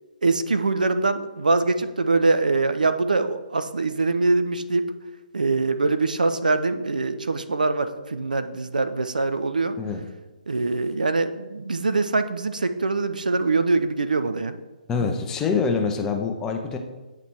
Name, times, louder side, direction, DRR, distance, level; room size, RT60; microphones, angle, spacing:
voice 1, 0.2-4.9 5.3-9.8 10.5-14.6, right 3 dB, 65° right, 10 dB, 0.4 m, -23 dB
voice 2, 9.8-10.1 14.9-16.8, left 5 dB, 10° left, 4 dB, 0.5 m, -25 dB
8.8 x 2.9 x 4.6 m, 1.2 s
figure-of-eight pair, 135°, 5 cm